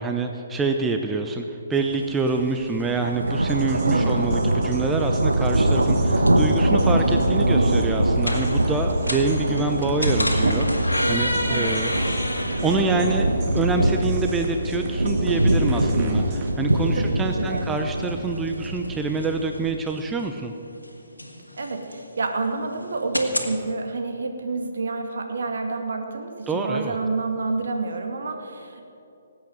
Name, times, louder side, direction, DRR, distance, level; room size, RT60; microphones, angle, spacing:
voice 1, 0.0-11.9 12.6-20.5 26.5-27.0, right 3 dB, 10° right, 4 dB, 0.8 m, -26 dB
sound 1, 1.9-2.1 2.4-19.7, right 1 dB, 80° right, 1.2 m, -23 dB
sound 2, 3.3-16.5, right 3 dB, 30° right, 1.8 m, -39 dB
voice 2, 3.8-4.3 11.4-11.8 16.9-17.7 21.6-28.9, right 3 dB, 60° right, 4 dB, 2.0 m, -29 dB
sound 3, 6.3-23.5, left 1 dB, 85° left, 1.9 m, -33 dB
19.5 x 8.5 x 7.8 m, 2.8 s
figure-of-eight pair, 130°, 0 cm